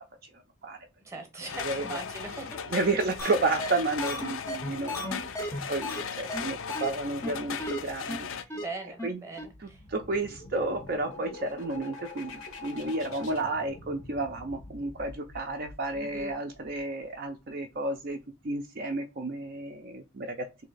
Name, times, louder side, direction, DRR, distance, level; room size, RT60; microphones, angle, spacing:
voice 1, 1.0-2.7 3.2-3.3 5.5-5.6 8.6-9.8 15.9-16.4, right 2 dB, 15° right, 5 dB, 0.8 m, -41 dB
sound 1, 1.5-8.4, left 7 dB, 70° left, 0.4 m, -37 dB
voice 2, 2.7-8.3 9.0-9.2 9.9-18.2 18.4-20.6, right 2 dB, 45° right, 3 dB, 0.4 m, -31 dB
sound 2, 3.2-3.3 3.6-3.7 4.0-6.0 6.3-6.4 6.7-6.9 7.2-7.3 7.6-7.8 8.1-8.2 8.5-8.6 9.0-9.1 9.4-9.5, left 1 dB, 15° left, 0.6 m, -34 dB
sound 3, 9.4-17.0, left 2 dB, 90° left, 1.0 m, -46 dB
3.1 x 2.7 x 3.9 m, 0.27 s
head